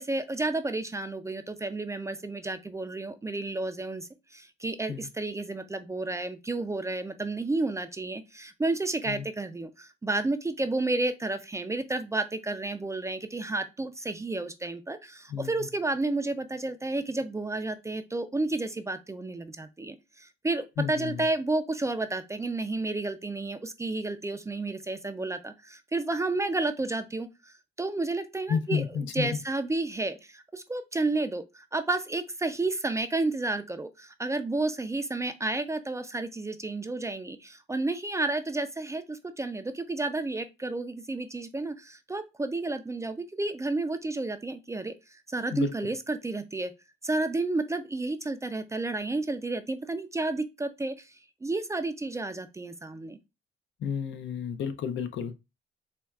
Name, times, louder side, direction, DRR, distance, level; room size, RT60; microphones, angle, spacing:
voice 1, 0.0-27.3 27.8-46.7 47.0-51.1 51.4-53.2, right 2 dB, 15° right, 0.3 m, -31 dB
voice 2, 15.3-15.7 20.8-21.3 28.5-29.3 45.5-45.7 53.8-55.4, left 7 dB, 70° left, 0.5 m, -31 dB
4.3 x 2.2 x 2.3 m
cardioid pair, 90°, 20 cm